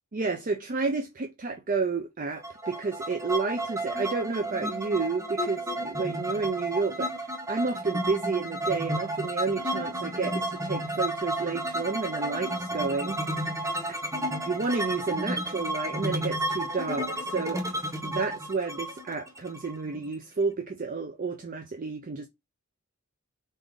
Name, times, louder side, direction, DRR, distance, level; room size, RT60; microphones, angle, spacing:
voice 1, 0.1-13.2 13.9-14.0 14.5-17.6 18.0-22.3, right 4 dB, 40° right, 0.5 m, -31 dB
sound 1, 2.4-20.1, right 1 dB, 15° right, 0.8 m, -32 dB
4.0 x 3.7 x 3.4 m
head